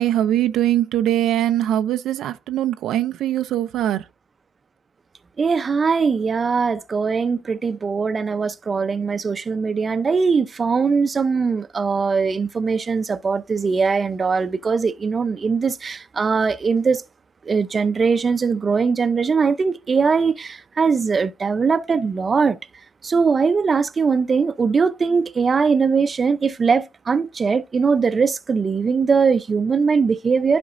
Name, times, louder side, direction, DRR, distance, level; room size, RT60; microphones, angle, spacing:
voice 1, 0.0-4.0, right 12 dB, 80° right, 0.5 m, -21 dB
voice 2, 5.4-17.0 17.5-22.6 23.0-30.6, right 5 dB, 35° right, 0.6 m, -21 dB
11.0 x 5.2 x 2.6 m
cardioid pair, 90°, 0 cm